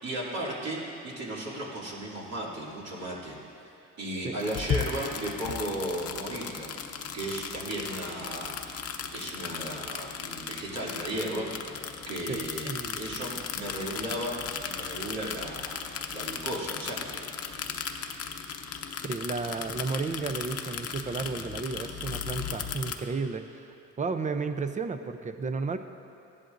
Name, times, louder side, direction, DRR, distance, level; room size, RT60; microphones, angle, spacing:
voice 1, 0.0-3.4 4.0-8.5 9.1-15.8 16.1-17.2 18.9-19.0, right 1 dB, 60° right, -5 dB, 2.7 m, -35 dB
sound 1, 4.4-23.0, left 7 dB, 55° left, 0.8 m, -36 dB
voice 2, 12.3-13.0 19.0-23.7 24.0-25.8, right 4 dB, 25° right, 9 dB, 0.6 m, -33 dB
15.5 x 11.0 x 2.6 m, 2.7 s
cardioid pair, 90°, 30 cm